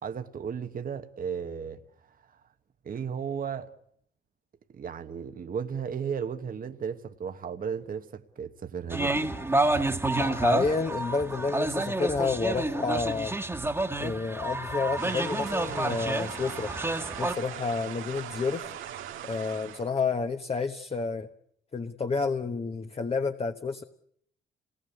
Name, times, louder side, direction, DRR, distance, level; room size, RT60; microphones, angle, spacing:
voice 1, 0.0-1.8 2.3-2.4 2.8-3.7 4.7-9.3, right 7 dB, 45° right, 1.2 m, -35 dB
sound 1, 8.9-17.3, right 2 dB, 10° right, 1.6 m, -29 dB
voice 2, 10.1-13.3 14.0-16.7 17.2-18.7 19.2-21.3 21.7-23.8, left 4 dB, 30° left, 1.2 m, -30 dB
sound 2, 15.0-19.9, right 10 dB, 85° right, 1.9 m, -40 dB
26.5 x 19.5 x 8.3 m
cardioid pair, 90°, 20 cm